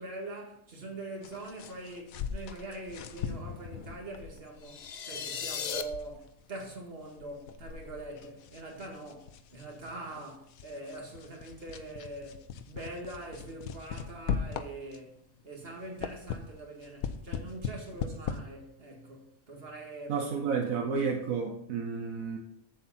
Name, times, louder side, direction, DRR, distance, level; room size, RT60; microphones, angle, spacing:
voice 1, 0.0-20.2 20.5-20.6, right 2 dB, 45° right, 2.1 m, -43 dB
sound 1, 1.2-15.2 15.6-18.4, left 7 dB, 85° left, 1.1 m, -40 dB
sound 2, 4.6-5.8, left 7 dB, 60° left, 0.4 m, -36 dB
voice 2, 20.1-22.4, right 5 dB, 75° right, 1.2 m, -31 dB
7.8 x 7.6 x 4.3 m
omnidirectional pair, 1.5 m